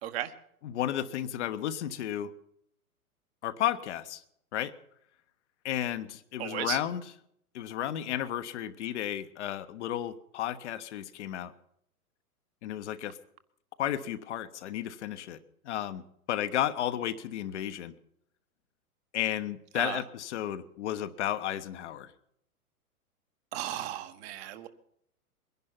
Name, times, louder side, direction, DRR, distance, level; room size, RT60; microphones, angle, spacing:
voice 1, 0.6-2.3 3.4-4.2 4.5-4.7 5.6-7.0 7.5-11.5 12.6-13.2 13.8-17.9 19.1-22.1, left 11 dB, 50° left, 10 dB, 1.2 m, -33 dB
voice 2, 6.4-6.8 19.7-20.0 23.5-24.7, right 12 dB, 40° right, 8 dB, 1.6 m, -35 dB
22.0 x 11.0 x 5.9 m, 0.71 s
figure-of-eight pair, 110°, 45 cm